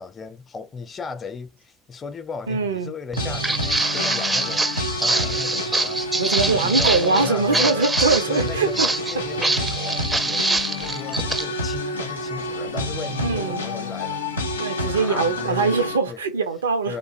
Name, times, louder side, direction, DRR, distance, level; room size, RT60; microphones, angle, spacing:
voice 1, 0.0-6.2 6.5-7.9 8.3-14.2 14.8-15.8 16.1-16.2 16.9-17.0, left 5 dB, 30° left, 0.6 m, -36 dB
voice 2, 2.5-2.9 6.1-8.9 13.2-13.7 14.6-17.0, right 4 dB, 80° right, 0.5 m, -22 dB
Walk footsteps, 3.1-11.4, right 2 dB, 15° right, 0.4 m, -24 dB
sound 1, 3.2-16.0, left 1 dB, 80° left, 0.4 m, -29 dB
2.5 x 2.4 x 2.9 m
figure-of-eight pair, 60°, 0 cm